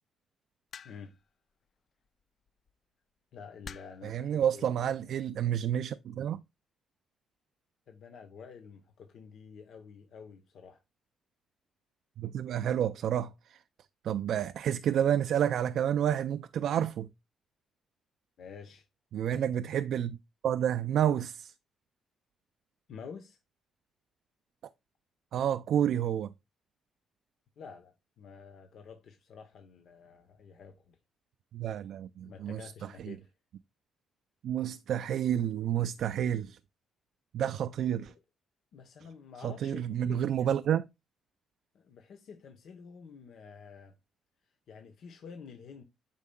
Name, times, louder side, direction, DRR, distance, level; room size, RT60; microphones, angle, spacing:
sound 1, 0.7-1.2 2.5-2.7 3.6-4.1 5.1-5.4, left 7 dB, 55° left, 0.4 m, -47 dB
voice 1, 3.3-5.1 7.9-10.8 18.4-18.9 22.9-23.4 27.6-31.0 32.2-33.3 38.1-38.2 38.7-40.5 41.7-43.9 44.7-45.8, left 6 dB, 70° left, 0.8 m, -49 dB
voice 2, 4.0-6.4 12.2-13.6 14.0-17.1 19.1-20.2 20.4-21.5 25.3-26.3 31.5-32.6 33.0-33.2 34.4-36.6 37.3-38.1 39.4-40.8, right 10 dB, 70° right, 0.3 m, -29 dB
8.3 x 5.4 x 2.2 m
cardioid pair, 90°, 0 cm